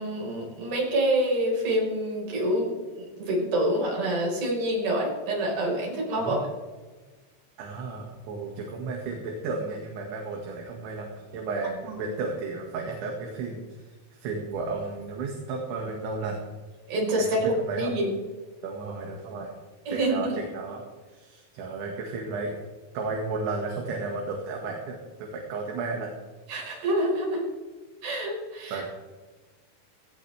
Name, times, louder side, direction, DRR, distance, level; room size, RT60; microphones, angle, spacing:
voice 1, 0.0-6.4 11.9-12.0 16.9-18.1 19.9-20.4 26.5-27.4 28.0-28.8, right 1 dB, 50° right, -2 dB, 6.5 m, -27 dB
voice 2, 7.6-16.4 17.2-17.9 18.6-19.5 19.9-20.8 21.1-22.6 22.9-26.1 28.7-28.9, right 3 dB, 70° right, 0 dB, 4.0 m, -33 dB
17.5 x 17.0 x 3.5 m, 1.3 s
omnidirectional pair, 5.7 m